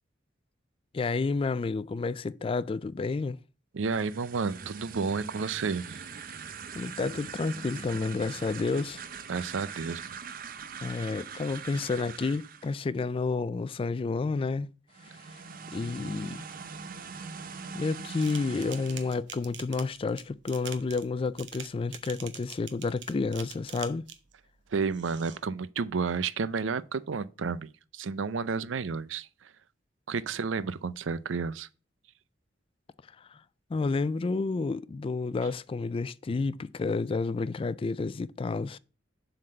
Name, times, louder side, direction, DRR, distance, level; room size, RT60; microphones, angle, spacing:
voice 1, 0.9-3.4 6.7-9.0 10.8-14.7 15.7-16.4 17.7-24.1 33.3-33.4 33.7-38.8, left 4 dB, 30° left, 0.3 m, -30 dB
voice 2, 3.7-6.0 9.3-10.0 24.7-29.5 30.1-31.7, right 5 dB, 85° right, 0.5 m, -31 dB
sound 1, 3.8-12.8 14.9-19.2, right 6 dB, 50° right, 0.7 m, -42 dB
sound 2, 18.2-24.3 24.9-25.4, right 9 dB, 65° right, 1.0 m, -45 dB
7.5 x 4.0 x 6.4 m
head